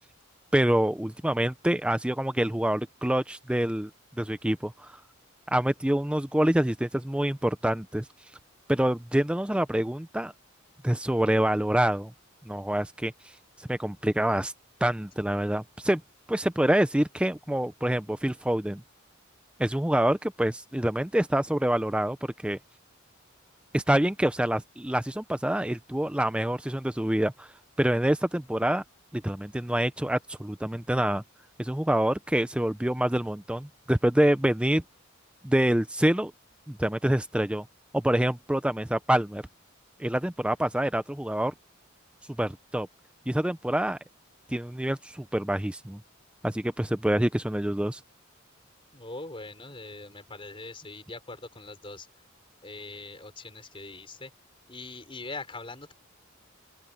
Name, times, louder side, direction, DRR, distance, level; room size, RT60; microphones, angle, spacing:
voice 1, 0.5-3.9 4.2-5.0 5.5-8.1 8.7-10.3 10.8-12.1 12.5-13.3 13.7-14.5 14.8-16.0 16.3-18.8 19.6-22.2 22.4-22.6 23.7-27.5 27.8-28.8 29.1-31.2 31.6-34.8 35.4-36.3 36.7-37.6 37.9-39.4 40.0-41.5 42.4-42.9 43.3-44.0 44.5-46.0 46.4-48.0, right 1 dB, 5° right, 0.5 m, -26 dB
voice 2, 48.9-52.1 52.6-54.3 54.7-55.9, left 3 dB, 25° left, 4.5 m, -42 dB
open air
head